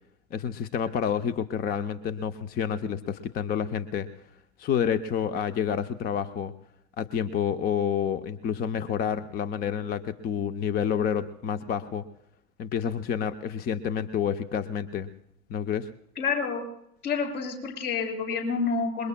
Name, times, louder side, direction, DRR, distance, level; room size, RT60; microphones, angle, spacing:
voice 1, 0.3-4.1 4.6-6.5 7.0-12.0 12.6-15.1 15.5-15.9, left 8 dB, 20° left, 11 dB, 0.6 m, -29 dB
voice 2, 16.2-16.6 17.0-19.1, left 5 dB, 65° left, 0 dB, 6.8 m, -28 dB
26.5 x 22.0 x 2.2 m, 0.75 s
figure-of-eight pair, 90°, 47 cm